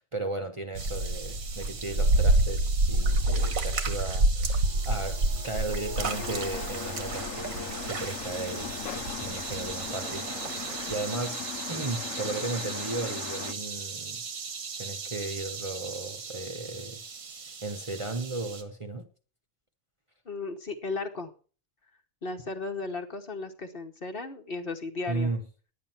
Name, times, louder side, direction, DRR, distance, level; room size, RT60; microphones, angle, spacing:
voice 1, 0.0-14.2 14.8-17.0 17.6-19.1 25.1-25.4, right 2 dB, 25° right, 1.0 m, -35 dB
sound 1, 0.7-18.6, right 2 dB, 80° right, 1.8 m, -30 dB
sound 2, 4.4-10.4, left 3 dB, 5° left, 1.1 m, -45 dB
sound 3, 6.0-13.5, left 9 dB, 70° left, 1.1 m, -39 dB
voice 2, 20.2-21.3 22.2-25.3, left 3 dB, 45° left, 1.2 m, -35 dB
10.5 x 9.3 x 5.8 m
omnidirectional pair, 1.4 m